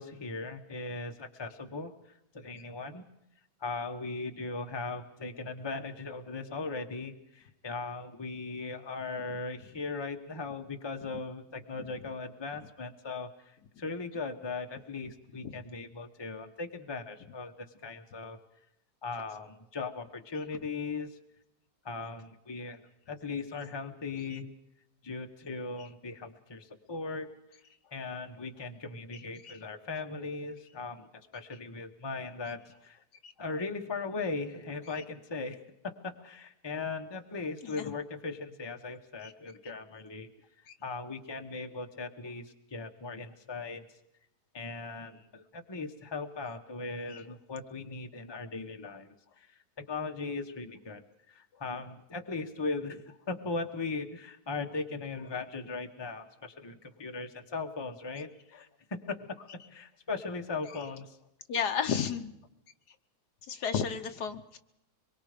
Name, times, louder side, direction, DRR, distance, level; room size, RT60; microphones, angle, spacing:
voice 1, 0.0-1.9 2.3-3.0 3.6-18.4 19.0-21.2 21.8-22.8 23.1-24.5 25.0-27.3 27.9-33.0 33.4-40.3 40.6-43.8 44.5-51.0 51.3-59.3 59.7-61.2, left 3 dB, 15° left, 5 dB, 1.0 m, -38 dB
voice 2, 61.5-62.3 63.5-64.6, left 7 dB, 70° left, 8 dB, 1.5 m, -32 dB
25.0 x 22.5 x 5.1 m, 0.85 s
omnidirectional pair, 1.8 m